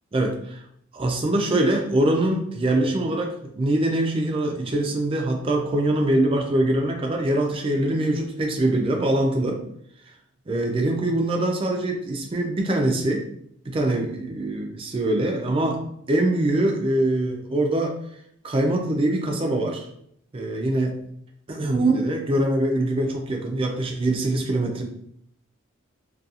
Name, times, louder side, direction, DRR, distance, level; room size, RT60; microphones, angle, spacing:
voice 1, 0.1-0.6 0.9-9.6 10.5-13.2 13.7-15.8 16.1-17.9 18.4-19.9 20.3-21.0 21.5-24.8, right 1 dB, 25° right, 2 dB, 0.3 m, -23 dB
2.4 x 2.3 x 2.7 m, 0.71 s
head